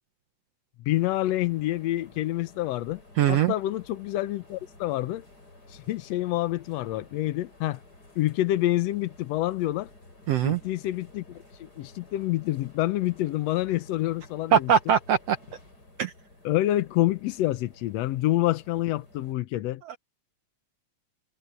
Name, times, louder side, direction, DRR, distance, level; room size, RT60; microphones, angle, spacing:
voice 1, 0.8-3.0 3.3-5.3 5.7-7.8 8.1-9.9 10.4-14.7 16.4-19.8, left 15 dB, 70° left, 1.6 m, -27 dB
sound 1, 0.9-19.4, left 2 dB, 30° left, 7.6 m, -53 dB
voice 2, 3.2-3.5 10.3-10.6 14.5-15.4 16.0-16.1 19.9-20.0, right 9 dB, 70° right, 1.5 m, -22 dB
omnidirectional pair, 3.7 m